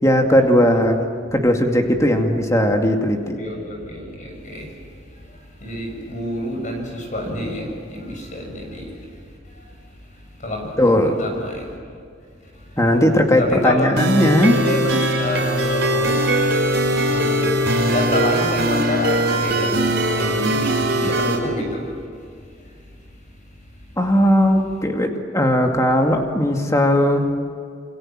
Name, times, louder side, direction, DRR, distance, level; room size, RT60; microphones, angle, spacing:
voice 1, 0.0-1.0 1.3-3.4 10.8-11.2 12.8-14.6 24.0-27.4, equal, 15° left, 3 dB, 2.4 m, -17 dB
voice 2, 3.4-4.7 5.6-8.9 10.4-11.7 13.4-13.9 14.4-16.3 17.0-21.9, left 1 dB, 40° left, 2 dB, 7.0 m, -28 dB
sound 1, 14.0-21.4, right 1 dB, 60° right, 5.6 m, -20 dB
28.0 x 24.5 x 7.6 m, 2.2 s
head